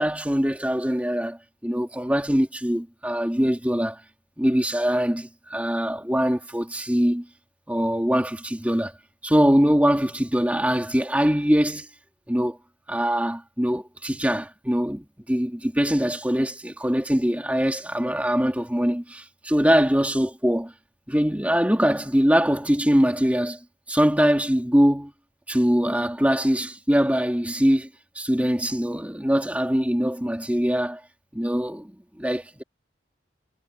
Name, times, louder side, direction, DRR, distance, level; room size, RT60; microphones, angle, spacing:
voice 1, 0.0-4.0 4.4-7.3 7.7-8.9 9.2-11.9 12.3-12.6 12.9-20.7 21.1-23.6 23.9-25.1 25.5-27.9 28.1-31.0 31.3-32.6, equal, 10° right, 2.4 m, -23 dB
head